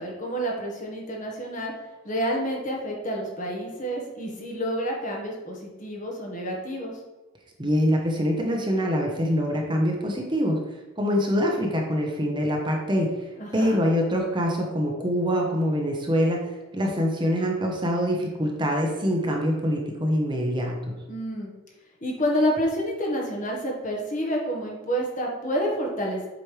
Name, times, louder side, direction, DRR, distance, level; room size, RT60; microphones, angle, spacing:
voice 1, 0.0-1.7 2.0-6.9 13.3-13.8 21.1-21.5 22.0-26.3, equal, 40° left, -1 dB, 1.4 m, -29 dB
voice 2, 7.6-10.6 11.0-13.1 13.5-16.4 16.7-20.9, equal, 25° right, 0 dB, 1.0 m, -24 dB
7.7 x 5.2 x 3.3 m, 1.1 s
head